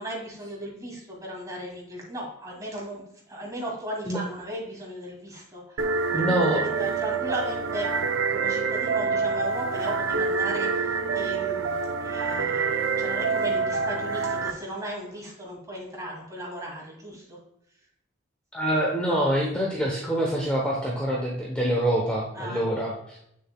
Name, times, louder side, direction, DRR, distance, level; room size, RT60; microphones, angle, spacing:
voice 1, 0.0-3.0 3.3-6.0 6.3-7.9 8.3-11.8 12.0-17.4 22.3-22.6, right 1 dB, 15° right, -3 dB, 2.4 m, -36 dB
sound 1, 5.8-14.5, right 5 dB, 90° right, 0.6 m, -26 dB
voice 2, 6.1-6.6 18.5-23.3, right 1 dB, 5° left, -3 dB, 0.9 m, -25 dB
7.9 x 6.7 x 2.2 m, 0.77 s
head